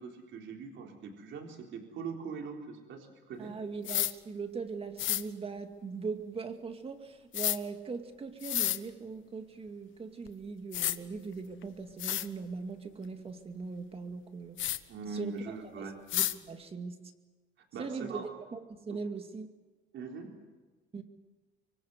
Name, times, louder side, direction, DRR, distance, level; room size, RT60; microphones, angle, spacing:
voice 1, 0.0-3.6 14.9-16.0 17.6-18.3 18.9-19.0 19.9-20.3, right 5 dB, 65° right, 2 dB, 3.9 m, -42 dB
voice 2, 3.4-14.6 15.1-15.3 15.8-17.0 17.8-19.5 20.9-21.0, right 4 dB, 25° right, 6 dB, 2.2 m, -40 dB
sound 1, 3.8-4.1 5.0-5.2 7.3-7.6 8.4-8.8 10.3-10.4 10.7-11.0 11.6-11.7 12.0-12.3 14.6-14.8 16.1-16.4, left 13 dB, 65° left, 1.1 m, -30 dB
24.5 x 24.5 x 8.0 m, 1.3 s
cardioid pair, 145°, 21 cm